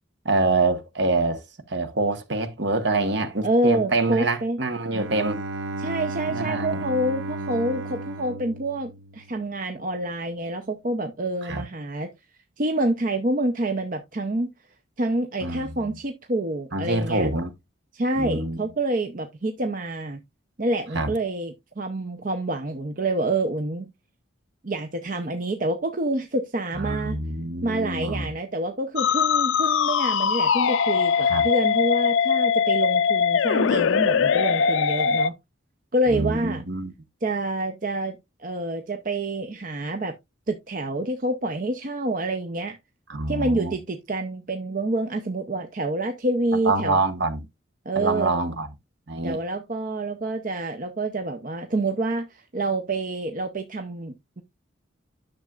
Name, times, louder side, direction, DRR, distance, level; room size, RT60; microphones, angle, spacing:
voice 1, 0.2-5.4 6.3-6.8 11.4-11.6 15.4-15.9 16.7-17.5 18.2-18.6 20.9-21.1 26.7-28.3 31.3-31.5 36.1-36.9 43.1-43.7 46.6-47.4 47.9-48.7 49.1-49.4, right 2 dB, 60° right, 1.2 m, -26 dB
voice 2, 3.4-4.6 5.8-12.1 12.6-14.5 15.0-17.3 17.9-20.2 20.6-23.9 24.6-27.2 27.6-35.4 35.9-36.6 37.2-38.2 38.4-40.1 40.5-42.8 43.3-47.0 47.9-48.4 49.2-54.4, right 2 dB, 45° right, 0.7 m, -27 dB
Bowed string instrument, 4.9-9.6, right 2 dB, 80° right, 0.8 m, -34 dB
Musical instrument, 29.0-35.3, left 6 dB, 75° left, 0.4 m, -21 dB
10.5 x 6.6 x 2.4 m
head